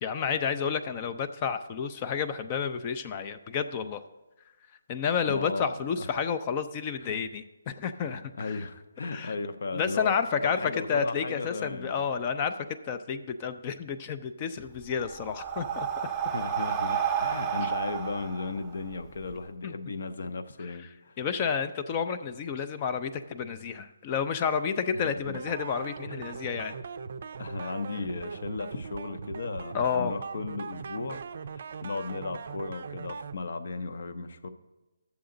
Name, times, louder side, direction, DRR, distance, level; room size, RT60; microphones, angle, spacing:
voice 1, 0.0-4.0 4.9-8.5 9.1-9.3 9.7-12.5 12.8-15.9 17.6-17.7 19.6-19.7 21.2-26.7 29.7-30.1, left 6 dB, 25° left, 9 dB, 0.4 m, -30 dB
voice 2, 5.3-6.1 7.0-7.2 8.1-12.0 16.3-21.2 24.9-25.4 26.1-26.2 27.4-31.2 31.5-34.5, left 3 dB, 60° left, 10 dB, 0.7 m, -36 dB
Breathing, 14.6-19.3, right 8 dB, 10° right, 0.7 m, -31 dB
sound 1, 25.3-33.3, right 5 dB, 50° right, 0.4 m, -40 dB
11.0 x 7.0 x 3.8 m, 1.1 s
hypercardioid pair, 160°, 0 cm